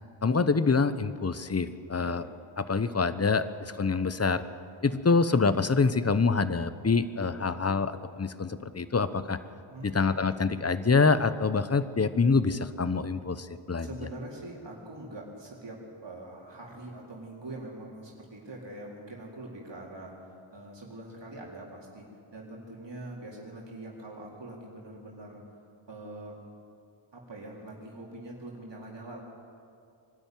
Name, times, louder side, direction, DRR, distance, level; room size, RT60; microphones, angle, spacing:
voice 1, 0.2-2.2 2.6-4.4 4.8-9.4 9.8-13.9, left 4 dB, 30° left, 13 dB, 0.9 m, -26 dB
voice 2, 9.7-10.0 13.8-20.1 20.5-22.1 22.3-25.4 25.9-26.4 27.1-29.2, right 2 dB, 60° right, -3 dB, 4.0 m, -43 dB
23.0 x 12.5 x 9.4 m, 2.4 s
wide cardioid pair, 80°, 49 cm